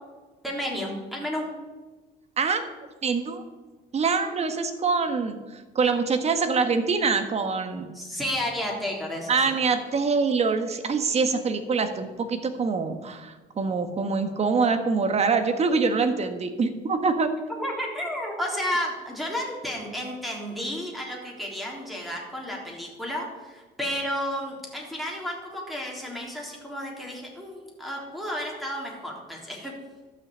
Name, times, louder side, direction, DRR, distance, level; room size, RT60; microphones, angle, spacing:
voice 1, 0.4-1.5 7.9-9.6 17.6-29.7, equal, ahead, -2 dB, 3.6 m, -32 dB
voice 2, 3.0-3.4 3.9-7.9 9.3-17.3, right 4 dB, 40° right, 7 dB, 1.5 m, -25 dB
12.5 x 6.3 x 8.3 m, 1.3 s
cardioid pair, 110°, 17 cm